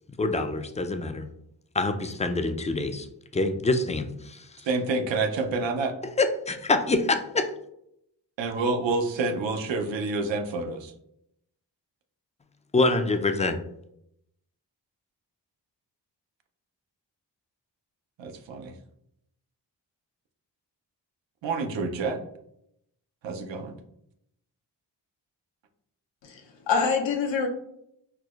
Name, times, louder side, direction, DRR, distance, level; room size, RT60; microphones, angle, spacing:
voice 1, 0.2-1.3 1.7-3.1 3.3-4.6 6.2-7.5 12.7-13.6, left 2 dB, 15° left, 8 dB, 0.3 m, -25 dB
voice 2, 4.6-5.9 8.4-10.9 18.2-18.7 21.4-22.2 23.2-23.7, right 3 dB, 85° right, 6 dB, 0.6 m, -28 dB
voice 3, 26.2-27.5, left 5 dB, 85° left, 2 dB, 0.6 m, -26 dB
4.5 x 2.0 x 2.3 m, 0.76 s
cardioid pair, 40°, 44 cm